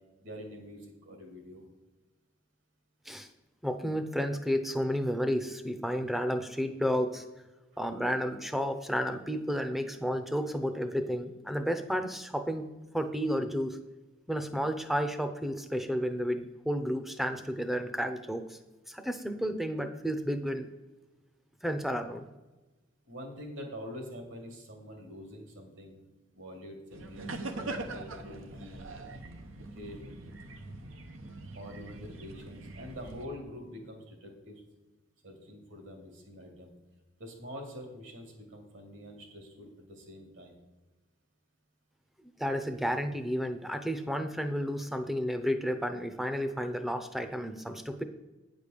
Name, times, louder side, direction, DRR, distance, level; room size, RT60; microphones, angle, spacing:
voice 1, 0.2-1.7 21.9-22.1 23.1-26.0 26.3-28.9 29.7-30.0 31.5-34.6 35.2-36.7 37.2-40.6, equal, 70° right, 3 dB, 2.3 m, -45 dB
voice 2, 3.6-7.2 7.8-12.6 12.9-13.8 14.3-18.6 18.9-20.7 21.6-22.2 42.4-48.0, equal, ahead, 8 dB, 0.6 m, -32 dB
sound 1, 26.9-33.3, right 2 dB, 90° right, 0.9 m, -42 dB
9.2 x 5.1 x 6.6 m, 1.2 s
head